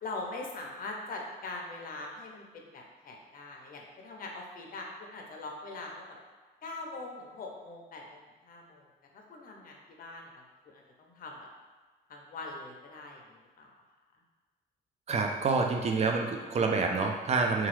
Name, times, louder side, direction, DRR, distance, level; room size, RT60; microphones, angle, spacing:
voice 1, 0.0-6.2 6.6-8.8 9.1-10.3 10.7-11.5 12.1-13.7, left 2 dB, 45° left, 0 dB, 0.6 m, -42 dB
voice 2, 15.1-17.7, right 4 dB, 35° right, 2 dB, 0.4 m, -27 dB
2.9 x 2.3 x 3.1 m, 1.4 s
cardioid pair, 90°, 20 cm